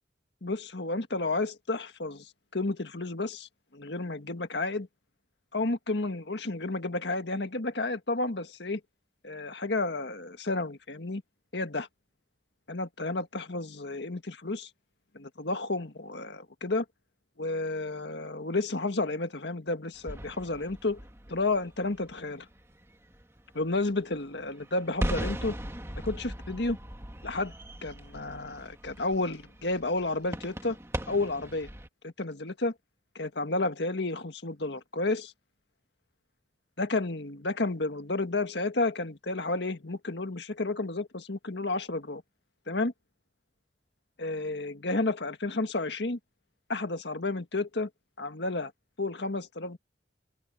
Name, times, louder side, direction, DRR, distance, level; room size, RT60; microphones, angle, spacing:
voice 1, 0.4-4.9 5.5-8.8 9.2-11.2 11.5-11.9 12.7-14.7 15.1-16.8 17.4-21.0 21.3-22.5 23.5-25.6 25.9-26.8 27.2-27.5 27.8-30.8 31.1-31.7 32.0-32.7 33.1-35.3 36.8-42.2 42.7-42.9 44.2-46.2 46.7-47.9 48.2-48.7 49.0-49.8, left 2 dB, 70° left, 1.7 m, -31 dB
sound 1, 19.9-31.9, equal, 15° right, 2.3 m, -39 dB
open air
head